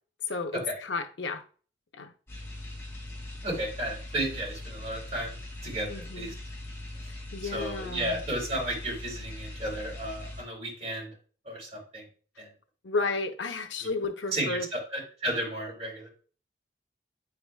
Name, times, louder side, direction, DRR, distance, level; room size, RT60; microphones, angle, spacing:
voice 1, 0.3-1.4 1.9-2.1 5.9-6.4 7.3-8.2 12.8-14.7, left 3 dB, 90° left, 0.8 m, -32 dB
sound 1, 2.3-10.4, left 1 dB, 15° left, 3.2 m, -41 dB
voice 2, 3.4-6.3 7.5-11.1 11.5-12.0 12.4-12.5 13.8-13.9 14.3-16.1, right 1 dB, 35° right, 3.7 m, -33 dB
9.5 x 4.8 x 2.3 m
head